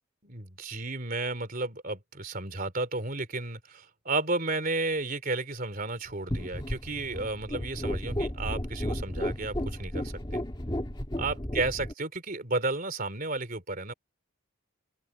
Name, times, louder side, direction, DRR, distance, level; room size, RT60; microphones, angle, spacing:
voice 1, 0.2-10.4 11.2-13.9, right 2 dB, 40° right, 3.4 m, -33 dB
sound 1, 6.3-11.9, equal, 20° left, 1.7 m, -33 dB
open air
head